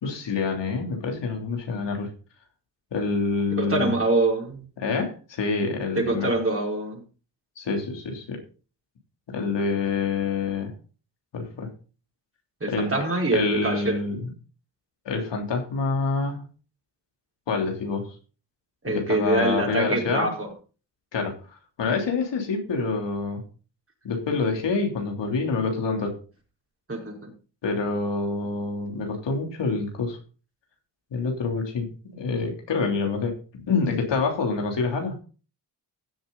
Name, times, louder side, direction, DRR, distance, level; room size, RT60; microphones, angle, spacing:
voice 1, 0.0-2.1 2.9-3.9 4.8-6.3 7.6-8.4 9.3-10.7 11.3-11.7 12.7-12.9 13.3-14.3 15.0-16.4 17.5-18.1 18.8-20.3 21.1-23.4 24.0-26.2 27.6-30.2 31.1-35.2, left 4 dB, 75° left, 2 dB, 3.4 m, -27 dB
voice 2, 3.5-4.7 5.9-7.0 12.6-14.0 18.8-20.5 26.9-27.3, right 2 dB, 30° right, 0 dB, 4.9 m, -25 dB
16.0 x 7.7 x 4.1 m, 0.36 s
cardioid pair, 80°, 43 cm